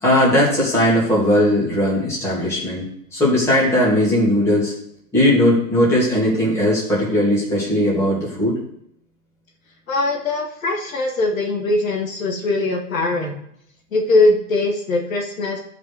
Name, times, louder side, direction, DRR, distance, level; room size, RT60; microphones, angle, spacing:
voice 1, 0.0-4.7 5.1-8.6, left 1 dB, 5° left, -7 dB, 2.5 m, -18 dB
voice 2, 9.9-13.4 13.9-15.6, left 2 dB, 60° left, 1 dB, 2.0 m, -21 dB
13.0 x 5.3 x 4.8 m, 0.73 s
hypercardioid pair, 165°, 46 cm